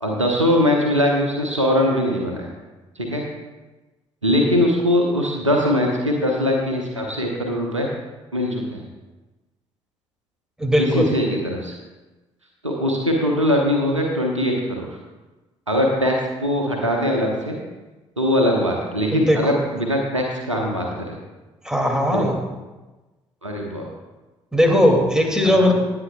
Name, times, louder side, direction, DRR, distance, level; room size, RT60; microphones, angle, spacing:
voice 1, 0.0-2.5 3.0-3.2 4.2-7.9 8.3-8.8 10.8-11.7 12.6-14.9 15.7-17.6 18.2-21.2 22.1-22.3 23.4-23.8 25.4-25.7, left 1 dB, 90° right, 0 dB, 1.1 m, -21 dB
voice 2, 10.6-11.1 19.1-19.5 21.6-22.4 24.5-25.7, equal, 5° right, 1 dB, 2.6 m, -18 dB
18.5 x 8.8 x 2.4 m, 1.2 s
figure-of-eight pair, 45°, 15 cm